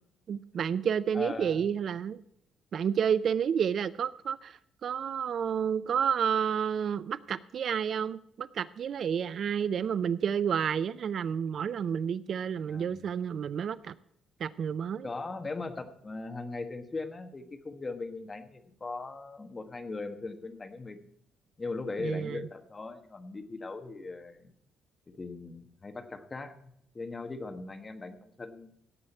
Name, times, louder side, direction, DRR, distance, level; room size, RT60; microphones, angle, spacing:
voice 1, 0.3-2.2 2.7-13.9 14.4-15.1 22.0-22.4, right 7 dB, 50° right, 16 dB, 0.4 m, -30 dB
voice 2, 1.1-1.7 12.7-13.1 15.0-21.0 21.6-24.5 25.1-26.6 26.9-28.7, left 3 dB, 20° left, 7 dB, 1.3 m, -39 dB
17.0 x 7.8 x 4.3 m, 0.71 s
cardioid pair, 150°, 0 cm